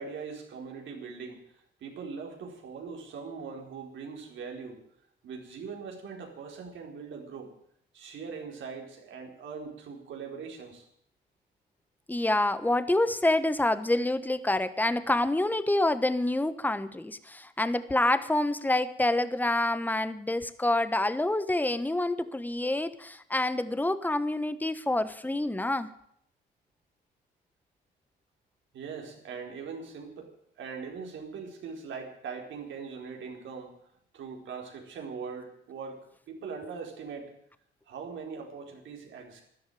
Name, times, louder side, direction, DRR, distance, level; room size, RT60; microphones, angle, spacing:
voice 1, 0.0-1.4 1.8-4.8 5.2-7.5 7.9-10.8 28.7-33.7 34.1-36.0 36.3-37.3 37.9-39.4, right 5 dB, 75° right, 2 dB, 4.5 m, -41 dB
voice 2, 12.1-25.9, left 1 dB, 10° left, 13 dB, 1.2 m, -27 dB
13.0 x 12.0 x 9.3 m, 0.70 s
cardioid pair, 90°, 20 cm